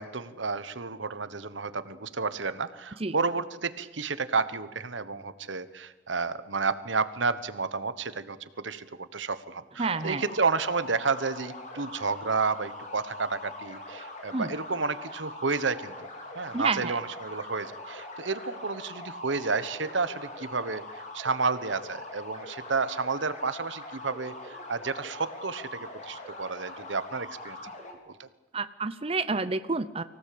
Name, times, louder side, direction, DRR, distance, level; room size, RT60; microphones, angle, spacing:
voice 1, 0.0-16.1 16.3-20.8 21.1-27.6 28.1-28.3, right 4 dB, 80° right, 14 dB, 1.2 m, -31 dB
voice 2, 9.8-10.2 14.3-14.5 16.5-17.0 28.5-30.0, right 3 dB, 30° right, 11 dB, 0.7 m, -29 dB
sound 1, 9.9-27.9, left 2 dB, 40° left, 3.8 m, -42 dB
24.5 x 17.0 x 8.6 m, 1.1 s
head